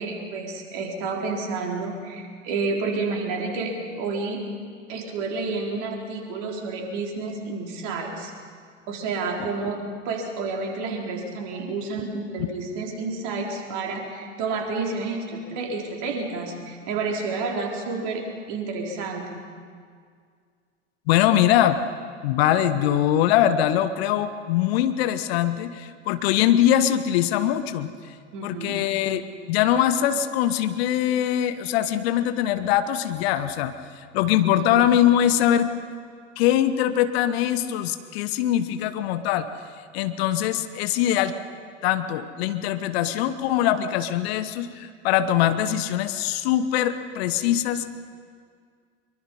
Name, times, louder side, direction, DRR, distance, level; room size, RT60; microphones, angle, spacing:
voice 1, 0.0-4.4 4.9-8.3 8.9-9.8 10.0-19.5 28.3-28.8 34.5-34.8, right 3 dB, 50° right, 1 dB, 4.0 m, -30 dB
voice 2, 21.1-21.8 22.2-28.1 28.4-35.7 36.4-39.5 39.9-41.3 41.8-47.8, left 11 dB, 55° left, 11 dB, 1.1 m, -22 dB
23.5 x 23.5 x 5.6 m, 2.1 s
figure-of-eight pair, 75°, 37 cm